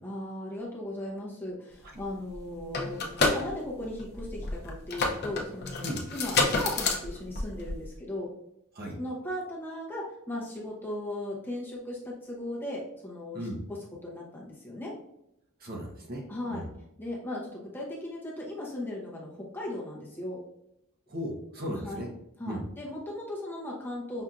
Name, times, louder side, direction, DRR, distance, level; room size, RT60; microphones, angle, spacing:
voice 1, 0.0-8.3 9.0-14.9 16.3-16.6 17.0-20.4 21.7-22.0 22.4-24.2, left 1 dB, 10° left, -4 dB, 0.7 m, -37 dB
sound 1, 2.0-2.1 2.3-8.0, left 3 dB, 45° left, 0.6 m, -29 dB
voice 2, 15.6-16.2 16.5-16.7 21.1-22.1 22.4-22.6, equal, 45° right, 0 dB, 0.8 m, -36 dB
5.6 x 2.5 x 2.4 m, 0.81 s
head